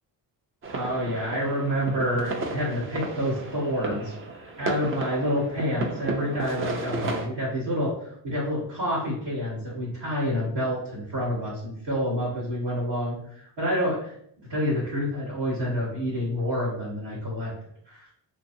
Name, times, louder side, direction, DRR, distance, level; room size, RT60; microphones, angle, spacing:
sound 1, 0.6-7.3, right 2 dB, 30° right, 0.5 m, -33 dB
voice 1, 0.7-4.1 4.4-14.1 14.4-17.5 17.9-18.0, equal, 80° right, -11 dB, 1.4 m, -28 dB
2.9 x 2.3 x 2.6 m, 0.69 s
supercardioid pair, 50°, 47 cm